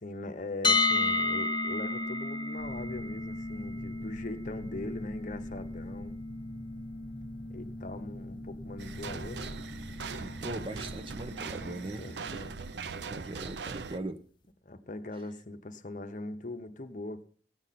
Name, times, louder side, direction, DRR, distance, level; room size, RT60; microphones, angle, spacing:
voice 1, 0.0-6.2 7.5-10.2 11.7-12.6 14.6-17.2, left 2 dB, 45° left, 0.9 m, -41 dB
sound 1, 0.6-12.6, left 3 dB, 25° left, 0.7 m, -34 dB
sound 2, 2.6-12.2, equal, 5° right, 1.3 m, -47 dB
sound 3, 8.8-14.0, right 5 dB, 70° right, 0.5 m, -40 dB
voice 2, 10.2-12.4 12.7-14.2, right 1 dB, 30° right, 0.6 m, -40 dB
16.0 x 8.8 x 4.1 m
head